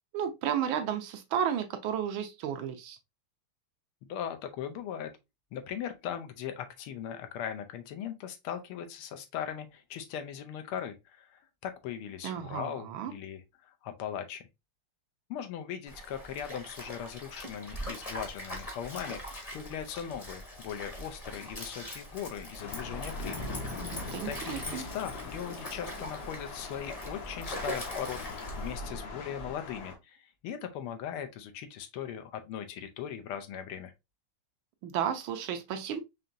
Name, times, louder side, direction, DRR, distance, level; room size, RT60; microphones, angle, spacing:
voice 1, 0.1-3.0 12.2-13.1 23.9-24.9 34.8-36.0, right 9 dB, 75° right, 1.3 m, -33 dB
voice 2, 4.1-5.2 5.5-14.5 15.3-23.4 24.2-33.9, left 9 dB, 80° left, 1.6 m, -39 dB
Stream, 15.9-28.9, left 1 dB, 25° left, 0.8 m, -42 dB
Thunder / Rain, 22.6-30.0, left 3 dB, 60° left, 1.2 m, -41 dB
5.1 x 2.9 x 2.6 m
omnidirectional pair, 2.4 m